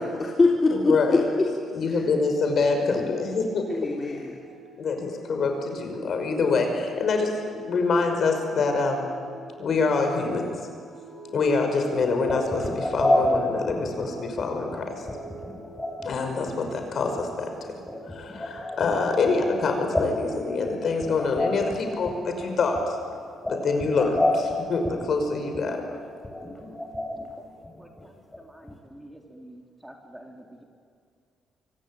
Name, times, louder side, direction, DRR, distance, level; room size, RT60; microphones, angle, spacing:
voice 1, 0.0-1.5 1.9-2.0 3.7-4.3 6.4-6.7, left 3 dB, 25° left, -2 dB, 3.6 m, -24 dB
voice 2, 0.7-1.2 1.7-3.9 4.8-9.1 9.6-10.6 11.3-15.1 16.0-17.5 18.1-23.0 23.5-25.8, left 4 dB, 55° left, 5 dB, 5.7 m, -25 dB
sound 1, 4.4-19.3, equal, 70° right, 5.6 m, -47 dB
sound 2, 12.0-27.3 27.6-28.0 28.3-28.4 28.6-28.8, left 1 dB, 10° left, 6.3 m, -30 dB
voice 3, 28.4-30.6, right 1 dB, 5° right, 1 dB, 3.8 m, -47 dB
26.0 x 24.0 x 9.2 m, 2.2 s
cardioid pair, 90°, 0 cm